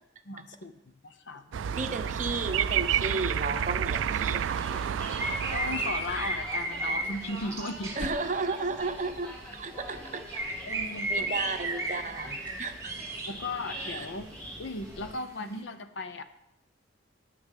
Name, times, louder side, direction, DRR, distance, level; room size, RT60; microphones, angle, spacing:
voice 1, 0.3-0.7 1.0-1.4 1.8-1.9 5.5-8.1 10.6-11.3 13.3-14.3 14.6-16.2, left 2 dB, 60° left, 10 dB, 0.7 m, -36 dB
sound 1, 1.5-6.5, right 9 dB, 65° right, 0.3 m, -30 dB
voice 2, 1.7-4.6 8.0-10.2 11.1-12.9 13.8-14.1, right 3 dB, 35° right, 7 dB, 0.8 m, -33 dB
sound 2, 4.3-15.1, right 1 dB, 10° left, 2.3 m, -44 dB
sound 3, 5.1-8.3 9.1-9.4 10.3-13.4 13.7-13.9, right 2 dB, 15° right, 1.3 m, -33 dB
9.4 x 6.6 x 7.5 m, 0.84 s
head